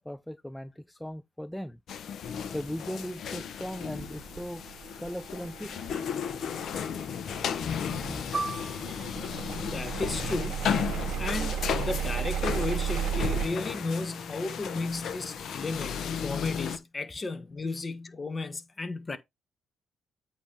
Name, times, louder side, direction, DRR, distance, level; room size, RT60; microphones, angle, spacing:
voice 1, 0.0-1.8 2.5-4.6 5.0-6.0 8.1-8.3 15.5-15.6 17.7-17.8, equal, 5° left, 0.4 m, -38 dB
sound 1, 1.9-16.8, left 7 dB, 65° left, 1.0 m, -34 dB
sound 2, 3.7-13.5, right 10 dB, 75° right, 0.5 m, -35 dB
Piano, 8.3-13.4 13.7-13.9 14.6-15.0, right 3 dB, 25° right, 1.3 m, -41 dB
voice 2, 9.5-10.8 11.2-19.2, left 3 dB, 30° left, 1.2 m, -34 dB
8.4 x 3.0 x 5.1 m
cardioid pair, 90°, 0 cm